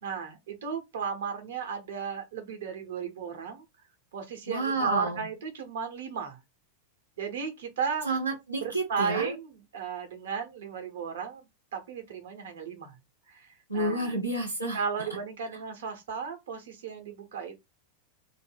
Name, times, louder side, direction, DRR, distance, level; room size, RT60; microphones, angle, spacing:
voice 1, 0.0-3.6 4.1-6.4 7.2-8.1 8.6-13.0 13.3-14.1 14.7-17.6, right 6 dB, 60° right, 0.9 m, -35 dB
voice 2, 4.5-5.2 8.0-9.3 13.7-14.8, right 2 dB, 85° right, 0.8 m, -30 dB
2.5 x 2.2 x 3.4 m
figure-of-eight pair, 90°, 0 cm